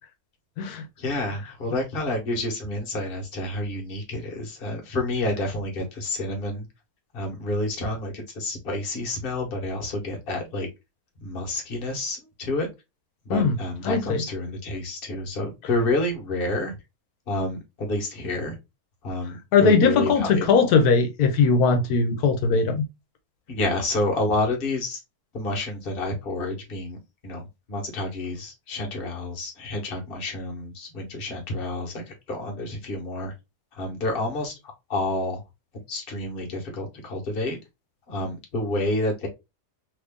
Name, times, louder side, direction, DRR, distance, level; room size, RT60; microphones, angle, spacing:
voice 1, 1.0-6.6 7.1-10.7 11.2-12.7 13.2-16.8 17.3-18.6 19.0-20.7 23.5-25.0 25.3-33.3 33.7-34.5 34.9-35.4 35.9-37.6 38.1-39.3, left 2 dB, 40° left, 1.1 m, -29 dB
voice 2, 13.8-14.2 19.5-22.8, left 5 dB, 85° left, 1.2 m, -20 dB
3.0 x 2.5 x 3.4 m
omnidirectional pair, 1.6 m